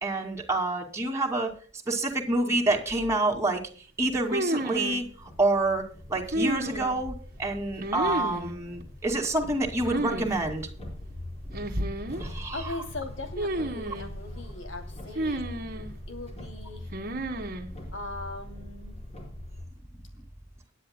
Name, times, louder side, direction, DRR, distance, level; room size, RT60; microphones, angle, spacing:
voice 1, 0.0-1.5 1.9-3.6 4.0-5.8 6.1-10.7 12.2-12.6, right 2 dB, 15° right, 0 dB, 2.4 m, -27 dB
sound 1, 4.3-5.0 6.3-7.1 7.8-8.5 9.8-10.3 10.5-10.6 11.5-12.2 13.4-14.1 15.2-15.9 16.9-17.7, right 1 dB, 50° right, 1.6 m, -31 dB
sound 2, 4.7-19.7, left 1 dB, 35° left, 4.7 m, -42 dB
voice 2, 12.5-15.6 16.1-16.9 17.9-19.0, left 2 dB, 75° left, 6 dB, 2.8 m, -39 dB
22.0 x 10.0 x 2.2 m, 0.40 s
head